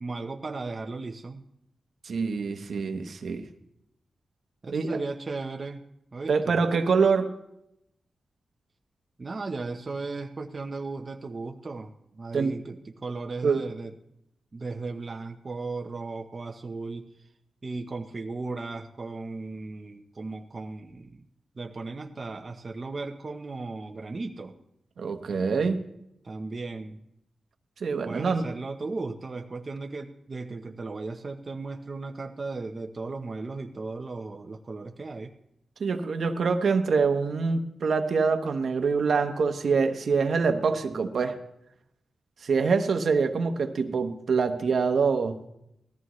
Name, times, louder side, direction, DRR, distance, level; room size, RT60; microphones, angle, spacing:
voice 1, 0.0-1.4 4.6-5.8 6.1-6.6 9.2-13.9 14.5-17.3 17.6-21.2 21.6-24.6 26.2-27.0 28.0-35.3, right 3 dB, 35° right, 3 dB, 0.8 m, -36 dB
voice 2, 2.0-3.4 4.7-5.0 6.3-7.3 12.3-12.6 13.4-13.6 25.0-25.8 27.8-28.4 35.8-41.4 42.4-45.4, right 5 dB, 60° right, 7 dB, 1.1 m, -25 dB
19.0 x 14.0 x 3.1 m, 0.80 s
wide cardioid pair, 130°, 0 cm